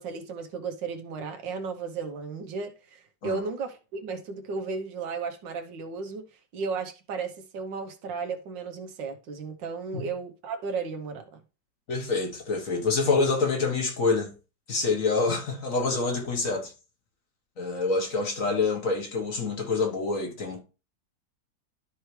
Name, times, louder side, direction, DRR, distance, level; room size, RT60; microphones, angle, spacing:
voice 1, 0.0-6.2 6.5-11.4, right 4 dB, 90° right, 1.7 m, -34 dB
voice 2, 11.9-14.3 14.7-16.7 17.6-20.6, left 4 dB, 50° left, 1.7 m, -26 dB
12.0 x 4.7 x 3.2 m
omnidirectional pair, 1.9 m